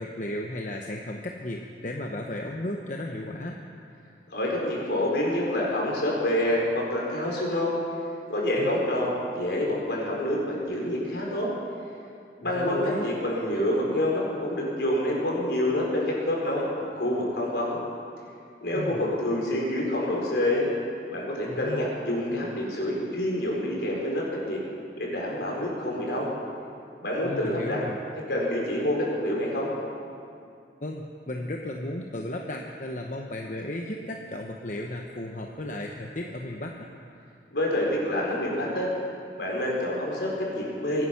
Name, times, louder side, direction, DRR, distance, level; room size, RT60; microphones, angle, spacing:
voice 1, 0.0-3.6 8.6-8.7 12.6-13.1 18.7-19.0 21.5-21.9 27.2-28.0 30.8-36.9, left 1 dB, 45° left, 1 dB, 0.9 m, -34 dB
voice 2, 4.3-7.8 8.3-11.5 12.4-16.7 17.0-17.8 18.6-20.7 21.1-24.6 25.0-26.3 27.0-27.8 28.3-29.7 37.5-38.9 39.4-41.1, left 1 dB, 70° left, -3 dB, 4.3 m, -27 dB
24.0 x 9.8 x 5.8 m, 2.5 s
head